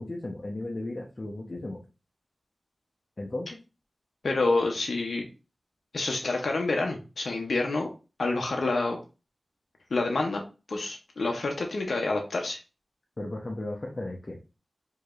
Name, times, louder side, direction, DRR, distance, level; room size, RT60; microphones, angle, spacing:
voice 1, 0.0-1.8 3.2-3.6 13.2-14.4, left 2 dB, 45° left, -2 dB, 0.8 m, -35 dB
voice 2, 4.2-5.3 5.9-7.9 8.2-9.0 9.9-10.4 10.7-12.6, left 3 dB, 85° left, 1 dB, 0.6 m, -28 dB
4.6 x 2.8 x 2.4 m, 0.31 s
wide cardioid pair, 55°, 0 cm